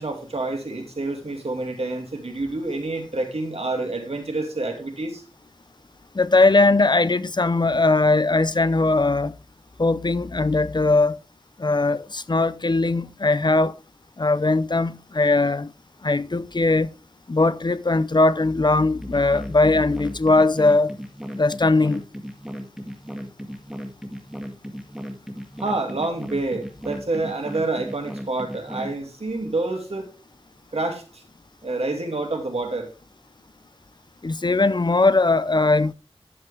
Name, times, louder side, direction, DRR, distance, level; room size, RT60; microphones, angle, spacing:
voice 1, 0.0-5.2 25.6-30.1 30.7-31.2 31.6-32.9, right 2 dB, 75° right, 2.4 m, -28 dB
voice 2, 6.1-9.3 9.8-11.2 11.6-13.7 14.2-15.7 16.0-16.9 17.3-20.9 21.3-22.0 34.2-35.9, left 3 dB, 45° left, 0.6 m, -20 dB
sound 1, 19.0-28.9, equal, 5° right, 1.9 m, -36 dB
11.0 x 7.6 x 3.5 m
wide cardioid pair, 55°, 10 cm